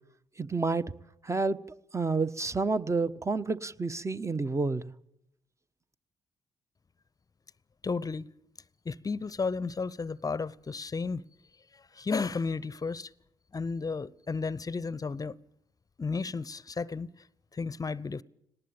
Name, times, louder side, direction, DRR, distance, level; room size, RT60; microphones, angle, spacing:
voice 1, 0.4-0.9 1.2-1.6 1.9-4.8, right 3 dB, 25° right, 1.1 m, -29 dB
voice 2, 7.8-8.3 8.8-11.2 11.7-13.1 13.5-15.4 16.0-17.1 17.5-18.2, left 4 dB, 30° left, 0.7 m, -33 dB
19.0 x 18.5 x 8.8 m
hypercardioid pair, 45°, 12 cm